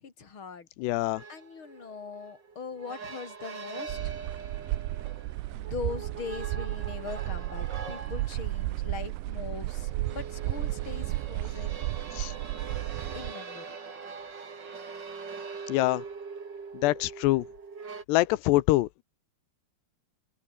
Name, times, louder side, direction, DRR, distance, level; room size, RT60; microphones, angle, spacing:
voice 1, 0.0-0.7 1.3-4.2 5.5-11.8 13.1-13.7, left 5 dB, 35° left, 3.5 m, -41 dB
voice 2, 0.8-1.2 12.1-12.3 15.7-16.0 16.7-17.5 18.1-19.0, left 18 dB, 85° left, 3.0 m, -25 dB
sound 1, 1.1-18.0, right 5 dB, 30° right, 2.8 m, -43 dB
sound 2, 3.9-13.3, right 19 dB, 85° right, 3.0 m, -33 dB
open air
omnidirectional pair, 4.8 m